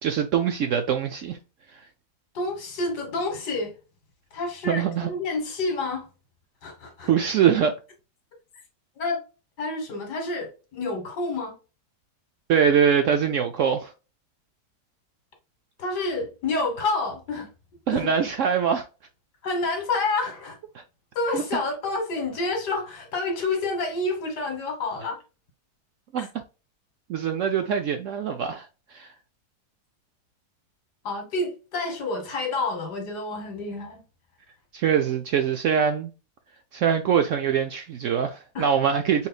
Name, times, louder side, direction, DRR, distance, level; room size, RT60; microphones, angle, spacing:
voice 1, 0.0-1.4 4.7-5.1 7.1-7.7 12.5-13.9 17.9-18.8 20.7-20.8 21.3-21.4 26.1-26.3 27.1-29.1 34.7-36.1 36.7-39.3, right 7 dB, 70° right, 0.7 m, -23 dB
voice 2, 2.3-3.7 4.3-6.1 6.6-7.1 9.0-9.2 9.6-11.5 15.8-17.5 17.9-18.1 19.4-20.6 21.2-25.2 26.2-26.3 31.0-34.0 38.5-38.7, left 3 dB, 80° left, 2.0 m, -28 dB
5.5 x 3.2 x 2.3 m
omnidirectional pair, 1.7 m